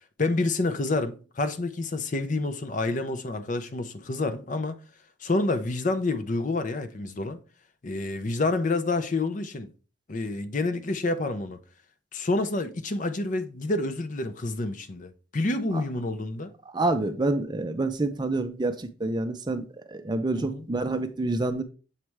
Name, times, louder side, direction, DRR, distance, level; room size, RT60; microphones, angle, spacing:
voice 1, 0.2-4.8 5.2-7.4 7.8-9.7 10.1-11.6 12.1-16.5 20.3-20.7, left 2 dB, 40° left, 0.6 m, -28 dB
voice 2, 16.7-21.6, right 2 dB, 20° right, 0.4 m, -28 dB
7.2 x 3.3 x 4.6 m
head